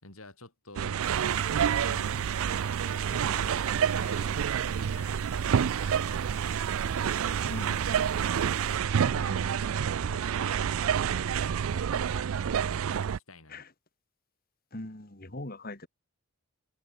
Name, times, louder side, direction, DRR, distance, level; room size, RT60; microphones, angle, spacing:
voice 1, 0.0-1.1 1.7-6.8 8.9-12.4 12.8-13.6, left 2 dB, 75° left, 6.6 m, -51 dB
sound 1, 0.8-13.2, right 8 dB, 70° right, 0.4 m, -28 dB
sound 2, 1.0-8.8, left 4 dB, 10° left, 4.8 m, -54 dB
voice 2, 7.5-7.8 13.5-13.7 14.7-15.9, left 1 dB, 40° left, 2.5 m, -40 dB
head